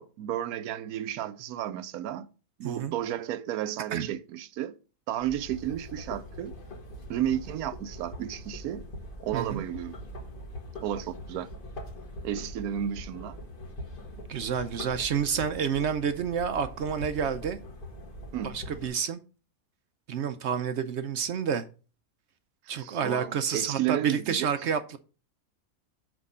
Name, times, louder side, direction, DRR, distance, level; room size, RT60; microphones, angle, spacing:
voice 1, 0.0-2.3 2.6-4.8 5.1-6.5 7.1-8.9 9.2-9.9 10.8-11.5 12.2-13.4 18.3-18.6 22.7-24.5, right 11 dB, 90° right, 1.1 m, -32 dB
voice 2, 2.6-2.9 3.9-4.1 9.3-9.6 14.3-17.6 18.4-19.2 20.1-21.6 22.7-25.0, right 7 dB, 65° right, 0.7 m, -29 dB
sound 1, 5.2-18.9, left 1 dB, 40° left, 1.4 m, -42 dB
6.1 x 4.4 x 5.4 m
omnidirectional pair, 1.5 m